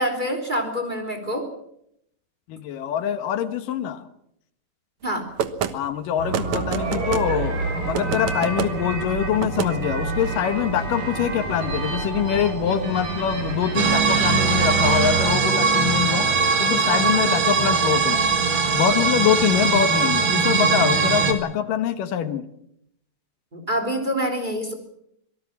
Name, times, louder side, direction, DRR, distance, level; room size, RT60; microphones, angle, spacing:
voice 1, 0.0-1.5 5.0-5.3 23.5-24.7, equal, 15° right, 6 dB, 3.2 m, -26 dB
voice 2, 2.5-4.0 5.7-7.6 7.9-16.3 16.6-18.2 18.7-22.5, left 9 dB, 80° left, 10 dB, 2.9 m, -24 dB
sound 1, 5.4-5.7 6.3-7.3 7.9-8.7 9.4-9.7, right 8 dB, 65° right, 2.4 m, -27 dB
sound 2, 6.2-15.3, right 3 dB, 90° right, 6.7 m, -29 dB
sound 3, 13.7-21.3, right 5 dB, 40° right, 2.4 m, -20 dB
25.5 x 18.5 x 7.3 m, 0.74 s
omnidirectional pair, 3.8 m